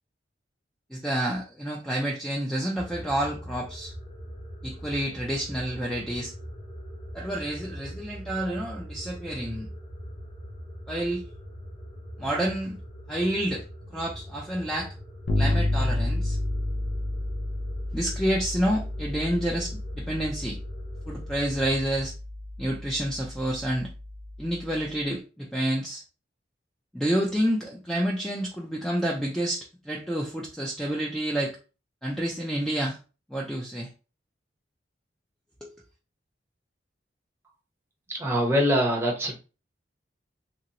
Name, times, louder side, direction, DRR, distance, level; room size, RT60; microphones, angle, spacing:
voice 1, 0.9-3.9 4.6-6.3 7.1-9.7 10.9-11.2 12.2-12.8 13.1-13.6 13.9-14.9 15.4-16.4 17.9-20.6 21.1-22.1 22.6-23.9 24.4-26.0 26.9-31.6 32.0-33.0 33.3-33.9 35.6-35.7, right 1 dB, ahead, 0.4 m, -29 dB
sound 1, 2.8-22.1, equal, 30° left, 1.1 m, -42 dB
Bass guitar, 15.3-24.9, left 2 dB, 60° left, 0.6 m, -31 dB
voice 2, 38.1-39.4, equal, 15° right, 0.7 m, -23 dB
3.0 x 2.6 x 2.8 m
head